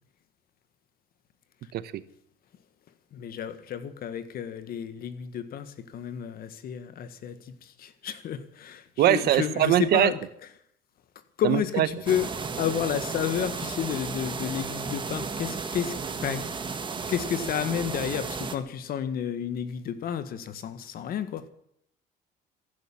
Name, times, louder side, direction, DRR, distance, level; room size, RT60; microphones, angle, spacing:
voice 1, 3.1-10.2 11.4-12.3 12.6-16.5 17.1-21.5, left 9 dB, 60° left, 12 dB, 1.8 m, -31 dB
voice 2, 9.0-10.1 11.4-11.9, right 13 dB, 70° right, 14 dB, 1.2 m, -22 dB
sound 1, 12.1-18.6, right 5 dB, 30° right, 1.7 m, -34 dB
15.0 x 11.5 x 7.4 m, 0.71 s
cardioid pair, 110°, 17 cm